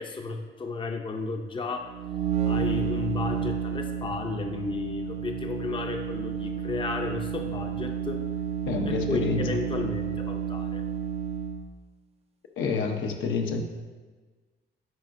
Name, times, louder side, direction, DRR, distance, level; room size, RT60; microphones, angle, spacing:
voice 1, 0.0-1.9 2.5-8.2 8.8-10.8, left 3 dB, 25° left, 4 dB, 0.6 m, -33 dB
sound 1, 1.8-11.7, right 7 dB, 30° right, 0.5 m, -31 dB
voice 2, 8.7-9.5 12.6-13.6, left 4 dB, 75° left, 3 dB, 0.8 m, -28 dB
9.2 x 5.1 x 2.6 m, 1.3 s
cardioid pair, 90°, 20 cm